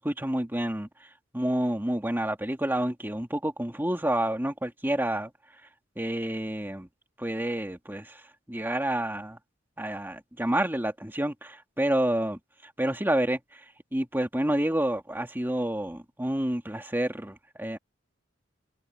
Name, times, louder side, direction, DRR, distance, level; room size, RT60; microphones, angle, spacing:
voice 1, 0.0-5.3 6.0-6.9 7.2-8.2 8.5-9.4 9.8-13.6 13.9-17.8, right 1 dB, 10° right, 2.4 m, -29 dB
head